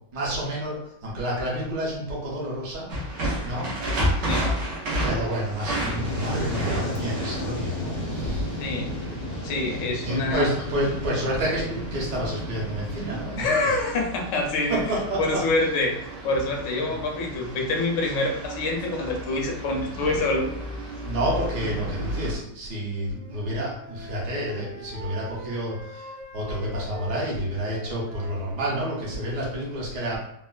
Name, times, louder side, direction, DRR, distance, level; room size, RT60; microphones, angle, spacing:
voice 1, 0.1-0.7 1.0-2.9 3.2-4.5 5.0-8.5 10.0-13.6 14.7-15.4 16.8-16.9 21.0-26.1 26.3-30.2, equal, 70° right, -5 dB, 1.6 m, -29 dB
sound 1, 2.9-22.3, equal, 85° right, 1.6 m, -33 dB
Fire, 5.6-13.2, left 1 dB, 55° left, 0.5 m, -33 dB
voice 2, 8.6-9.0 9.4-10.5 13.4-14.8 15.2-20.5, left 2 dB, 90° left, 1 dB, 1.4 m, -26 dB
Wind instrument woodwind instrument, 22.9-29.3, right 2 dB, 50° right, 0.9 m, -43 dB
4.1 x 2.1 x 2.4 m, 0.77 s
omnidirectional pair, 1.8 m